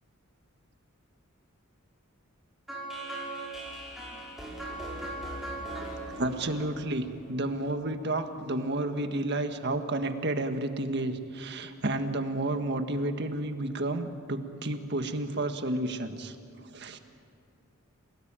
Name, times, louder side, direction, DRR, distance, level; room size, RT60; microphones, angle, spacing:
sound 1, 2.7-7.7, right 1 dB, ahead, 5.2 m, -39 dB
voice 1, 6.2-16.3 16.7-17.0, right 2 dB, 55° right, 7 dB, 1.6 m, -31 dB
29.5 x 18.5 x 9.0 m, 2.6 s
head